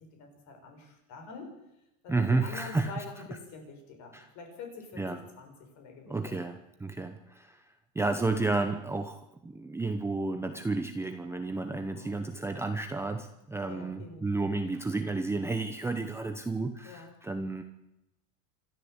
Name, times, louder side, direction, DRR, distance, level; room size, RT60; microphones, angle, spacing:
voice 1, 0.0-1.6 2.0-6.4 11.7-12.1 13.6-14.3 16.8-17.1, left 4 dB, 45° left, 4 dB, 7.0 m, -46 dB
voice 2, 2.1-3.0 4.1-4.3 5.0-5.2 6.1-7.6 7.9-17.6, right 3 dB, 5° right, 6 dB, 0.9 m, -31 dB
27.0 x 13.5 x 8.1 m, 0.88 s
supercardioid pair, 155°, 40 cm